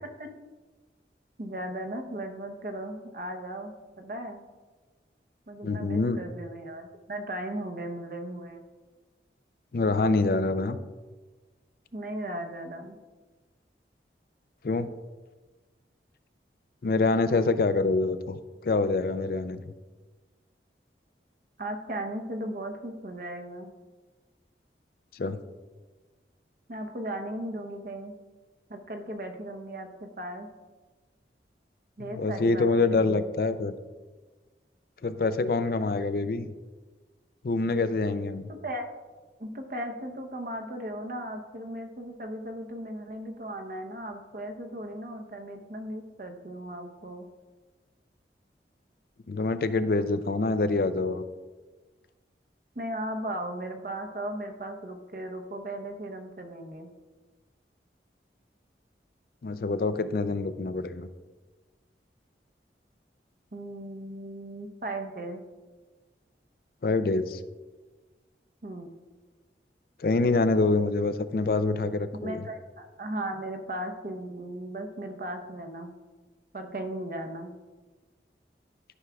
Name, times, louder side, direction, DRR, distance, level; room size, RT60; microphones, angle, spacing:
voice 1, 1.4-4.4 5.5-8.6 11.9-13.0 21.6-23.7 26.7-28.2 28.7-30.5 32.0-33.4 38.5-38.9 39.4-47.3 52.7-56.9 63.5-65.4 68.6-68.9 72.2-76.0 76.5-77.5, right 1 dB, 50° right, 4 dB, 0.8 m, -37 dB
voice 2, 5.6-6.2 9.7-10.8 14.6-14.9 16.8-19.6 25.2-25.4 32.0-33.7 35.0-36.4 37.4-38.5 49.3-51.2 59.4-61.1 66.8-67.4 70.0-72.4, left 3 dB, 55° left, 12 dB, 0.4 m, -26 dB
12.5 x 6.0 x 2.3 m, 1.3 s
head